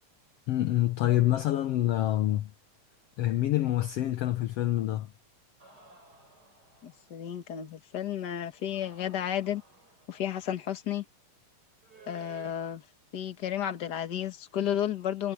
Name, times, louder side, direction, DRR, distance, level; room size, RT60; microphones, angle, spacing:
voice 1, 0.5-2.5 3.2-5.1, left 14 dB, 75° left, 1.4 m, -26 dB
sound 1, 5.6-7.2 8.5-10.3 11.8-12.5, right 4 dB, 30° right, 6.0 m, -55 dB
voice 2, 6.8-9.6 10.1-11.0 12.1-12.8 13.1-15.3, left 10 dB, 40° left, 1.6 m, -32 dB
omnidirectional pair, 3.8 m